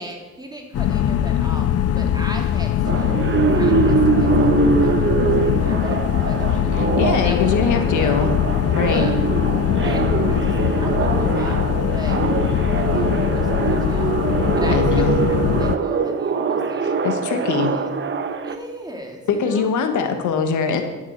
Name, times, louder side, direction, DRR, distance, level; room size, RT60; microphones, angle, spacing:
voice 1, 0.0-1.7 1.9-3.2 3.5-6.8 7.1-8.1 8.8-9.2 9.7-10.0 10.3-10.5 10.8-12.2 12.9-14.2 14.5-17.9 18.4-19.7, right 1 dB, 15° right, 1 dB, 2.7 m, -37 dB
sound 1, 0.7-15.8, left 10 dB, 55° left, 0.6 m, -21 dB
sound 2, 2.9-18.6, right 5 dB, 40° right, 1.0 m, -23 dB
voice 2, 6.7-8.3 8.7-9.0 14.7-15.2 16.8-17.7 19.3-20.8, left 6 dB, 80° left, 6 dB, 1.4 m, -22 dB
11.5 x 7.3 x 6.6 m, 1.2 s
cardioid pair, 90°, 30 cm